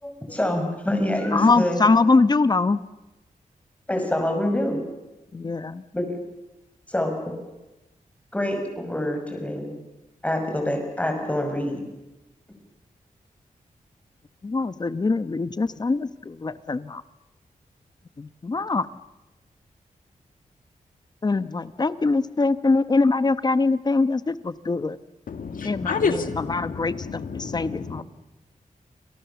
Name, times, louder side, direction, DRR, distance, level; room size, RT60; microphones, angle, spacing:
voice 1, 0.0-1.8 3.9-4.8 5.9-6.2 6.9-7.4 8.3-9.7 10.2-11.8, left 1 dB, 10° left, 4 dB, 6.3 m, -26 dB
voice 2, 1.3-2.8 5.3-5.8 14.4-17.0 18.2-18.9 21.2-25.0 25.6-28.0, left 3 dB, 30° left, 13 dB, 1.0 m, -23 dB
voice 3, 25.3-28.0, left 5 dB, 80° left, 7 dB, 2.2 m, -29 dB
29.0 x 27.0 x 7.1 m, 1.0 s
wide cardioid pair, 165°, 14 cm